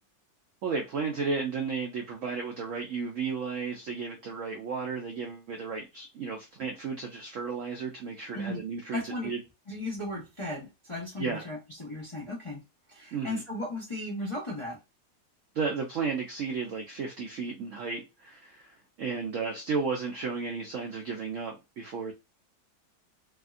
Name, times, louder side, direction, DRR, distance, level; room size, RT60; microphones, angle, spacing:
voice 1, 0.6-9.4 11.2-11.5 13.1-13.4 15.5-22.1, right 5 dB, 75° right, 0.7 m, -33 dB
voice 2, 8.9-9.3 9.7-12.6 12.9-14.8, left 2 dB, 30° left, 0.6 m, -36 dB
3.4 x 2.1 x 2.4 m
omnidirectional pair, 1.9 m